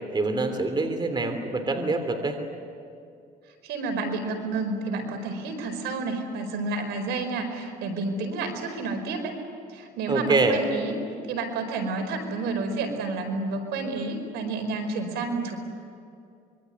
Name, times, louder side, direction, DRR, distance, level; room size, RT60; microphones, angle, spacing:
voice 1, 0.1-2.4 10.1-10.6, right 3 dB, 25° right, 7 dB, 3.1 m, -25 dB
voice 2, 3.6-9.3 9.7-10.9 11.2-15.6, right 3 dB, 85° right, 5 dB, 5.0 m, -30 dB
25.5 x 23.5 x 9.6 m, 2.5 s
cardioid pair, 110°, 17 cm